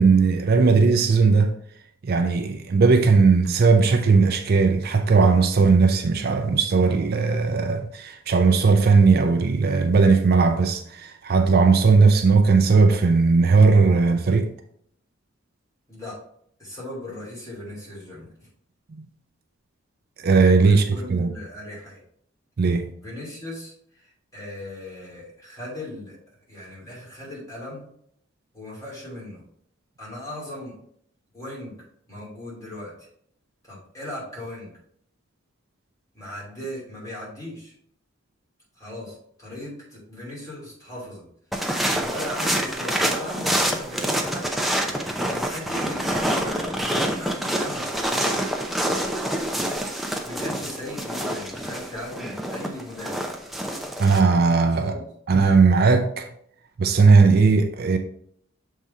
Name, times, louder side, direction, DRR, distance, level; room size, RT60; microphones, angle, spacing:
voice 1, 0.0-1.5 2.0-14.5 18.9-19.1 20.2-21.3 22.6-22.9 54.0-54.9 55.3-56.3 56.8-58.0, right 4 dB, 50° right, 0.4 m, -18 dB
voice 2, 16.6-18.3 20.6-22.0 23.0-26.2 26.5-27.8 28.5-29.4 30.0-30.7 31.3-31.8 32.1-33.1 33.6-34.7 36.1-37.7 38.8-41.3 41.8-48.4 50.2-53.3 54.7-55.1, left 1 dB, 15° left, 2.8 m, -38 dB
sound 1, 41.5-54.2, right 1 dB, ahead, 0.5 m, -27 dB
7.0 x 3.7 x 4.2 m
head